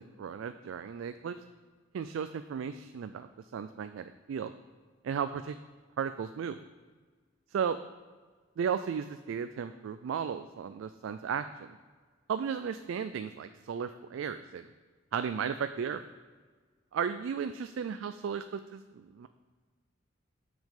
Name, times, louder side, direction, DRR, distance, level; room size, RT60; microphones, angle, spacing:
voice 1, 0.0-1.4 1.9-4.5 5.0-5.6 6.0-6.6 7.5-7.8 8.6-11.7 12.3-14.7 15.1-16.0 16.9-19.3, right 7 dB, 75° right, 10 dB, 0.3 m, -35 dB
6.3 x 5.3 x 6.5 m, 1.5 s
head